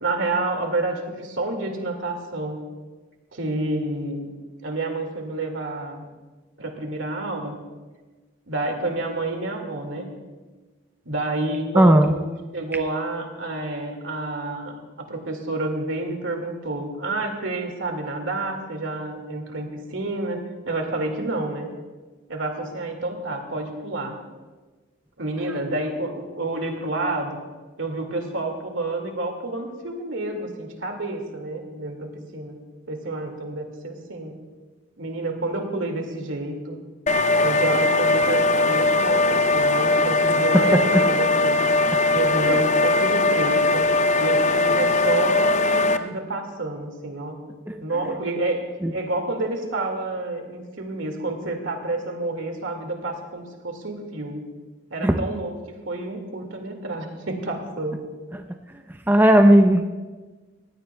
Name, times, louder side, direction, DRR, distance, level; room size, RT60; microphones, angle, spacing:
voice 1, 0.0-2.6 3.3-4.3 4.6-6.0 6.6-7.6 8.5-10.1 11.1-21.7 22.3-24.2 25.2-27.4 27.8-32.6 32.9-34.3 35.0-36.8 37.4-41.6 42.1-43.9 44.2-47.4 47.8-48.6 48.9-54.4 54.9-58.0, right 2 dB, 85° right, 3 dB, 2.1 m, -29 dB
voice 2, 11.8-12.1 42.5-42.6 47.7-48.1 48.8-48.9 55.0-55.2 58.3-58.4 59.1-59.8, right 1 dB, 10° right, 5 dB, 0.5 m, -16 dB
sound 1, 37.1-46.0, left 2 dB, 35° left, 0.5 m, -20 dB
19.5 x 16.5 x 2.3 m, 1.3 s
head